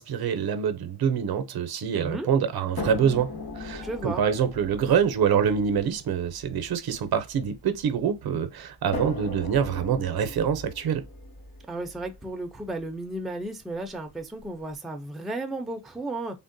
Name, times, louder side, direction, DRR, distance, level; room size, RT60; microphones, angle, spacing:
voice 1, 0.0-11.0, right 7 dB, 70° right, 0.6 m, -25 dB
voice 2, 1.9-2.3 3.8-4.2 11.7-16.4, right 2 dB, ahead, 0.4 m, -34 dB
sound 1, 2.8-8.0 8.9-12.9 13.9-14.0 14.4-14.5, left 2 dB, 50° left, 1.5 m, -39 dB
3.5 x 2.1 x 2.5 m
wide cardioid pair, 130°, 39 cm